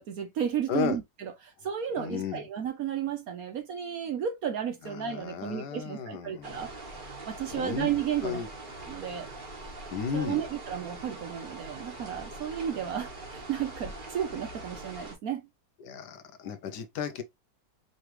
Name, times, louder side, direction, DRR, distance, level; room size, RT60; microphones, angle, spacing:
voice 1, 0.0-6.7 7.3-8.4 8.9-9.3 10.1-15.4, right 9 dB, 60° right, 1.0 m, -33 dB
voice 2, 0.7-1.0 2.0-2.4 4.8-6.6 7.5-7.9 8.2-8.5 9.9-10.4 15.8-17.2, left 7 dB, 70° left, 1.1 m, -34 dB
sound 1, 6.4-15.1, right 2 dB, 30° right, 1.2 m, -43 dB
4.8 x 3.2 x 3.0 m
omnidirectional pair, 2.1 m